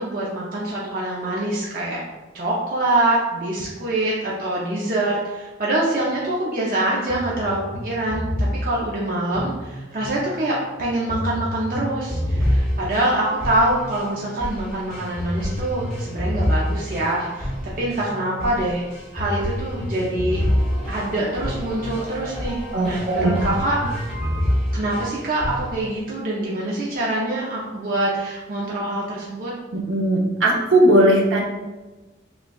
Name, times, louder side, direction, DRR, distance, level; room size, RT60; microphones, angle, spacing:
voice 1, 0.0-2.0 2.3-18.8 19.1-20.4 20.9-23.8 24.7-29.5, right 1 dB, 45° right, -5 dB, 0.5 m, -25 dB
sound 1, 7.1-10.2 11.1-25.8, equal, 5° left, 1.0 m, -27 dB
voice 2, 22.7-23.4 29.7-31.4, right 1 dB, 85° right, -1 dB, 0.7 m, -18 dB
6.1 x 2.3 x 2.3 m, 1.2 s
head